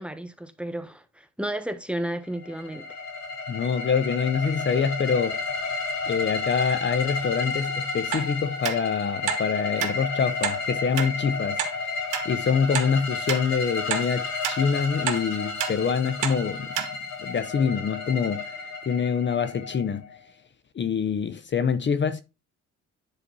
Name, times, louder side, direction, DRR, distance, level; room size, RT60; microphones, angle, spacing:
voice 1, 0.0-2.9, right 1 dB, 5° right, 1.1 m, -32 dB
sound 1, 2.3-20.2, left 4 dB, 70° left, 3.0 m, -32 dB
voice 2, 3.5-5.4 6.1-11.9 12.2-16.9 17.2-18.5 18.9-20.0 20.7-22.2, left 6 dB, 40° left, 0.7 m, -25 dB
sound 2, 8.1-8.3 8.6-8.8 9.3-9.4 9.8-9.9 10.4-10.6 11.0-11.1 11.6-11.7 12.1-12.2 12.7-12.9 13.3-13.4 13.9-14.1 14.4-14.6 15.1-15.2 15.6-15.7 16.2-16.4 16.7-16.9 17.4-17.5, right 10 dB, 85° right, 1.3 m, -28 dB
10.0 x 4.2 x 4.0 m
cardioid pair, 90°, 30 cm